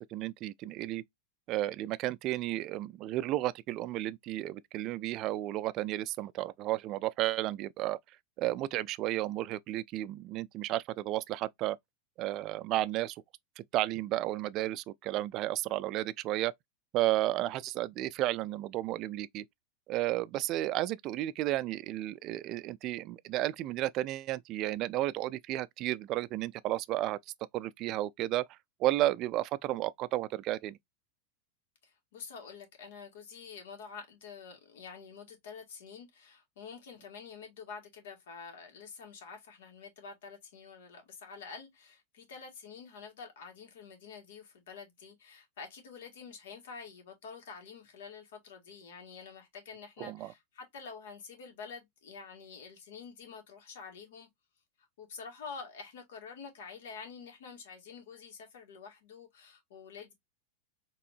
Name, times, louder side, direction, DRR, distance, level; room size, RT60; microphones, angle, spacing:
voice 1, 0.1-1.0 1.5-8.0 8.4-11.8 12.2-13.2 13.6-16.5 16.9-19.4 19.9-27.2 27.5-28.4 28.8-30.8 50.0-50.3, right 15 dB, 40° right, 0.3 m, -32 dB
voice 2, 31.8-54.3 55.0-60.1, left 5 dB, 85° left, 2.0 m, -48 dB
4.3 x 3.0 x 2.7 m
supercardioid pair, 150°, 0 cm